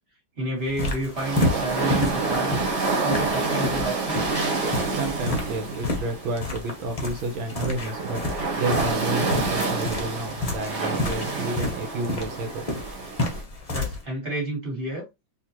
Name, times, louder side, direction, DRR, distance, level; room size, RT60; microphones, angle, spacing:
voice 1, 0.4-2.6 3.0-4.4 13.7-15.1, right 1 dB, 30° right, 2.1 m, -30 dB
sound 1, 0.6-14.0, left 2 dB, 45° left, 0.5 m, -31 dB
sound 2, 1.1-13.4, right 3 dB, 45° right, 0.9 m, -28 dB
voice 2, 4.9-12.9, right 2 dB, 90° right, 1.6 m, -31 dB
3.6 x 2.8 x 2.9 m
omnidirectional pair, 2.2 m